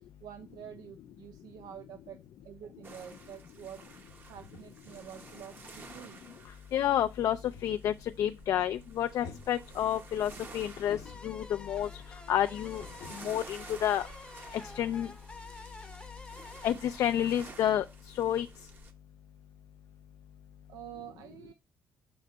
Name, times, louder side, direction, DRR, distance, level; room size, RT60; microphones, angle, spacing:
voice 1, 0.2-2.2 2.4-3.8 4.3-6.2 20.7-21.5, right 10 dB, 80° right, 0.5 m, -47 dB
sound 1, 2.4-8.1 8.4-8.7 9.2-11.7 12.8-14.7 15.0-15.1, left 5 dB, 70° left, 0.9 m, -54 dB
sound 2, 2.8-18.9, right 3 dB, 30° right, 0.8 m, -52 dB
voice 2, 6.7-7.4 7.6-11.0 11.2-11.9 12.3-12.8 13.2-14.1 14.8-15.1 16.6-17.8 18.1-18.5, left 11 dB, 55° left, 0.3 m, -29 dB
sound 3, 11.1-18.0, left 3 dB, 15° left, 0.7 m, -50 dB
6.3 x 3.9 x 4.3 m
cardioid pair, 150°, 7 cm